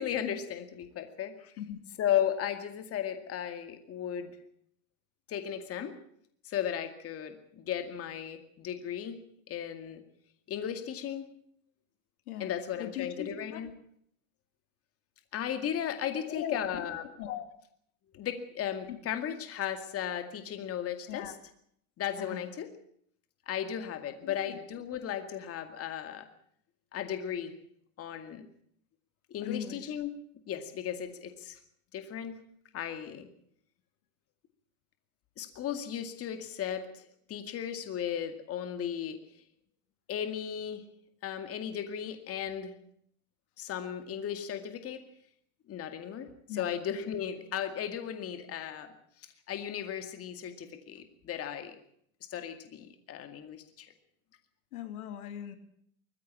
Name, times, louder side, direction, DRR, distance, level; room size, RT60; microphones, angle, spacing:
voice 1, 0.0-1.5 2.0-4.4 5.3-5.9 6.4-9.2 9.5-10.0 10.5-11.3 12.4-13.7 15.3-17.0 18.1-21.3 22.0-22.7 23.5-26.3 26.9-27.5 28.0-28.5 29.3-30.1 30.5-31.6 31.9-32.4 32.7-33.3 35.4-39.2 40.1-40.8 41.2-42.7 43.6-45.0 45.7-46.3 46.5-48.9 49.5-51.8 52.3-53.9, left 9 dB, 30° left, 8 dB, 2.2 m, -35 dB
voice 2, 12.8-13.6 16.1-16.9 17.2-17.5 18.9-19.0 21.1-21.3 22.2-22.5 24.2-24.6 29.4-29.9 46.5-46.7 54.7-55.6, left 10 dB, 80° left, 8 dB, 3.1 m, -39 dB
21.0 x 15.0 x 8.6 m, 0.67 s
supercardioid pair, 125°, 44 cm